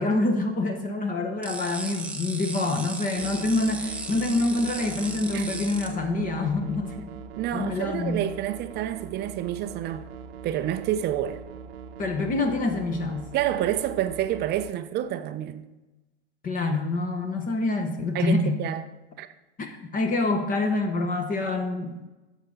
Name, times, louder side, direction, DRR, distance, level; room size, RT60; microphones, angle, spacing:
voice 1, 0.0-7.1 7.5-8.2 12.0-13.3 16.4-18.6 19.6-22.1, left 2 dB, 25° left, 1.1 m, -26 dB
sound 1, 1.4-5.9, right 2 dB, 5° right, 0.9 m, -36 dB
sound 2, 3.1-14.7, right 6 dB, 55° right, 1.0 m, -42 dB
voice 2, 7.4-10.1 10.4-11.4 13.3-15.7 18.1-18.9 19.2-19.3, right 12 dB, 30° right, 0.6 m, -28 dB
12.0 x 7.2 x 3.9 m
hypercardioid pair, 115°, 35 cm